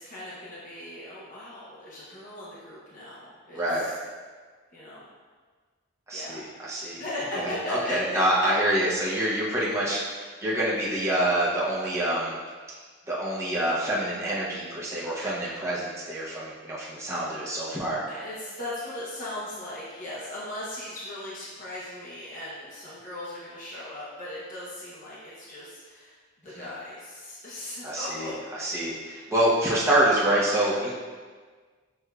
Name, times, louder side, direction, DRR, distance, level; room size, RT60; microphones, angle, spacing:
voice 1, 0.0-3.9 4.7-5.0 6.1-6.5 7.0-8.2 18.1-26.2 26.4-28.3, left 1 dB, 35° left, -8 dB, 0.7 m, -37 dB
voice 2, 3.5-3.9 6.1-7.0 7.4-12.4 13.1-18.0 26.5-26.6 27.8-30.9, right 1 dB, 15° right, -8 dB, 0.7 m, -26 dB
6.3 x 2.6 x 2.3 m, 1.5 s
head